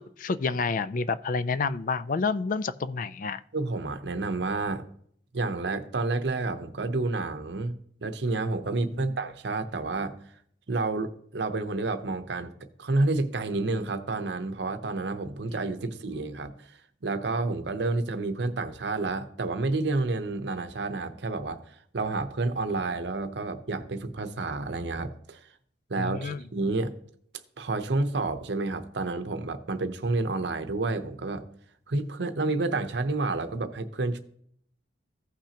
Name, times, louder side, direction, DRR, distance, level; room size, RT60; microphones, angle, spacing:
voice 1, 0.0-3.4 8.8-9.1 26.0-26.4, left 4 dB, 45° left, 0.4 m, -29 dB
voice 2, 3.5-4.9 5.3-7.7 8.0-10.1 10.7-12.5 12.8-16.8 17.0-25.4 25.9-26.9 27.6-31.4 31.9-34.2, right 3 dB, 70° right, 0.7 m, -29 dB
15.5 x 5.8 x 2.9 m
head